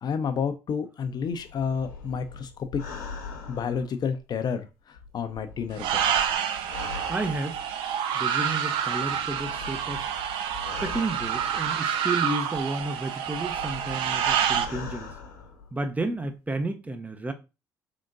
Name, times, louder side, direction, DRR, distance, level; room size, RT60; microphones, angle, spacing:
voice 1, 0.0-2.8 3.5-6.3, left 6 dB, 50° left, 0.5 m, -30 dB
sound 1, 1.2-4.5 5.0-7.9 8.8-12.0 12.6-16.0 16.2-16.3, left 5 dB, 85° left, 1.0 m, -42 dB
sound 2, 5.8-14.7, right 8 dB, 70° right, 0.5 m, -28 dB
voice 2, 7.1-7.6 8.1-10.0 10.8-15.1 15.7-17.3, right 2 dB, 15° right, 0.6 m, -32 dB
3.7 x 3.5 x 2.5 m
hypercardioid pair, 55°, 9 cm